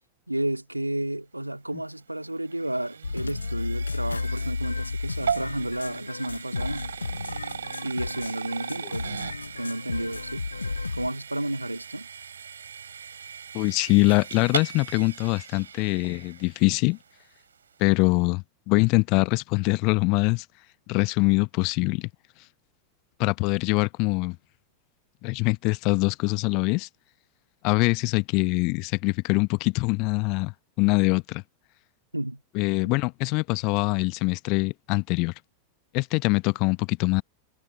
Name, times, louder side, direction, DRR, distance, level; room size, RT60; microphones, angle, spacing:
voice 1, 0.3-6.9 7.8-9.1 9.6-10.4 10.9-12.1 32.1-32.4 32.8-32.9, right 1 dB, 85° right, 2.3 m, -31 dB
sound 1, 1.8-17.0, right 7 dB, 70° right, 3.7 m, -38 dB
sound 2, 3.0-11.1, left 4 dB, 80° left, 0.7 m, -33 dB
voice 2, 13.5-17.0 17.8-20.4 20.9-22.1 23.2-24.4 25.2-26.9 27.6-31.4 32.5-35.3 35.9-37.2, left 28 dB, 45° left, 0.8 m, -23 dB
figure-of-eight pair, 90°, 0 cm